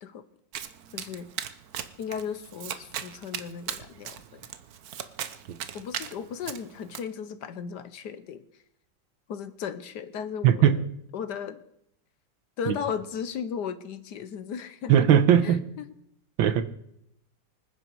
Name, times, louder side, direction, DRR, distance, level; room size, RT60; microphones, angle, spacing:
Domestic sounds home sounds, 0.5-7.0, right 9 dB, 60° right, 1.2 m, -38 dB
voice 1, 0.9-1.3 2.0-4.5 5.7-8.4 9.3-10.8 11.1-11.6 12.6-15.1 15.4-15.9, left 7 dB, 65° left, 13 dB, 1.4 m, -36 dB
voice 2, 10.4-10.8 12.7-12.8 14.9-15.6 16.4-16.6, right 9 dB, 90° right, 11 dB, 1.8 m, -19 dB
25.0 x 10.0 x 4.7 m, 0.77 s
omnidirectional pair, 2.0 m